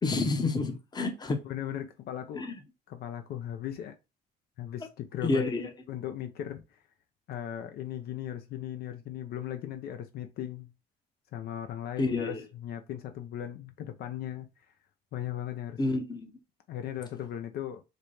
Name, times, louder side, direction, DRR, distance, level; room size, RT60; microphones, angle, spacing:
voice 1, 0.0-1.4 2.3-2.5 5.2-5.7 12.0-12.4 15.8-16.3, left 3 dB, 25° left, 0.8 m, -29 dB
voice 2, 1.4-2.5 2.9-3.9 4.6-6.8 7.3-10.7 11.3-14.5 15.1-15.8 16.7-17.8, left 10 dB, 65° left, 0.5 m, -37 dB
4.1 x 2.2 x 3.1 m
cardioid pair, 110°, 17 cm